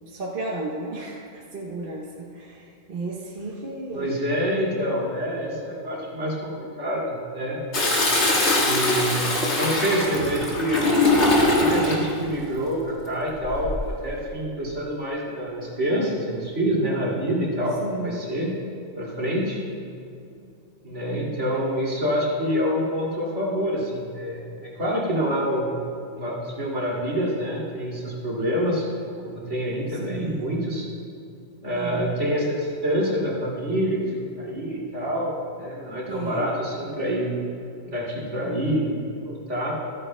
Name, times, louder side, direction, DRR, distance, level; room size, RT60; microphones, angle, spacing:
voice 1, 0.1-4.1 17.8-18.3 30.0-30.4 31.7-32.2 36.1-36.5, right 2 dB, 45° right, -3 dB, 1.1 m, -33 dB
voice 2, 3.9-7.6 8.6-9.3 9.5-10.9 11.3-17.8 18.0-18.5 19.0-19.6 20.8-25.7 26.2-28.9 29.2-30.9 31.6-37.4 37.9-39.0 39.2-39.7, equal, 60° right, -5 dB, 2.8 m, -26 dB
Toilet flush, 7.7-12.0 13.4-13.9, left 2 dB, 60° left, 1.9 m, -22 dB
14.5 x 13.5 x 2.2 m, 2.6 s
omnidirectional pair, 1.3 m